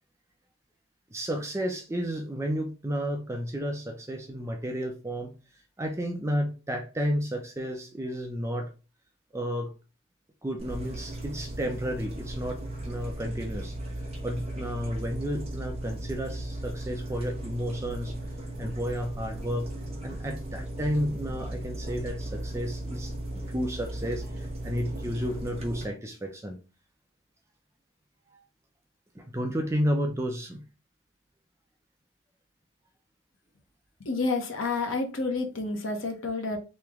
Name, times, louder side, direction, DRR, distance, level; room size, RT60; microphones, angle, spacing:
voice 1, 1.1-5.3 5.8-8.7 9.3-9.7 10.4-18.1 18.6-19.7 20.0-26.6 28.3-28.4 29.1-30.6, equal, 15° right, 0.5 m, -32 dB
sound 1, 10.6-25.8, right 1 dB, 30° right, 1.0 m, -36 dB
voice 2, 34.0-36.6, left 3 dB, 75° left, 0.9 m, -29 dB
3.2 x 2.9 x 3.5 m
head